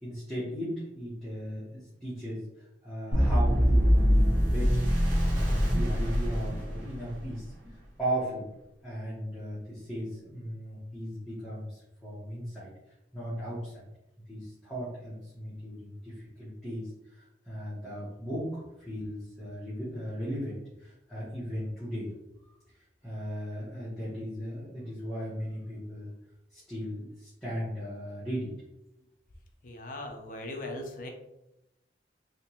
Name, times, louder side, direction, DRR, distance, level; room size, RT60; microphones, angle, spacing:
voice 1, 0.0-4.8 5.3-8.5 8.8-12.7 13.1-13.9 14.3-22.1 23.0-26.1 26.5-28.5, equal, ahead, -11 dB, 1.1 m, -37 dB
sound 1, 3.1-7.2, equal, 45° right, 1.2 m, -24 dB
voice 2, 29.6-31.1, left 1 dB, 50° left, 2 dB, 0.6 m, -39 dB
3.4 x 2.9 x 2.9 m, 0.90 s
head